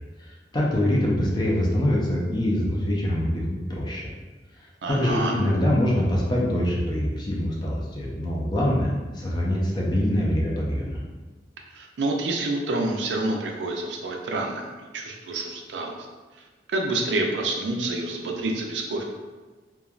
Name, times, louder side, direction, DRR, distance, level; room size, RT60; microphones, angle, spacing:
voice 1, 0.2-4.1 4.9-11.0, left 1 dB, 25° left, -4 dB, 0.5 m, -24 dB
voice 2, 4.8-5.4 11.7-16.1 16.3-19.0, right 2 dB, 90° right, 1 dB, 0.4 m, -28 dB
3.1 x 2.2 x 2.4 m, 1.3 s
head